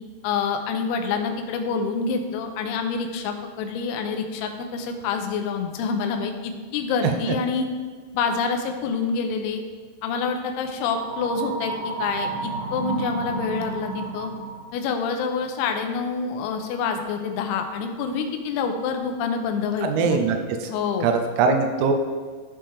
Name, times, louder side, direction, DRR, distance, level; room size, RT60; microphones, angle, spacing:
voice 1, 0.2-7.7 8.1-9.6 10.0-14.3 14.7-20.3 20.7-21.1, left 5 dB, 90° left, 5 dB, 3.5 m, -27 dB
sound 1, 10.8-14.8, right 4 dB, 65° right, 2.2 m, -32 dB
voice 2, 19.8-20.7 21.0-21.9, right 4 dB, 80° right, 5 dB, 3.3 m, -22 dB
14.5 x 5.4 x 3.5 m, 1.5 s
omnidirectional pair, 6.0 m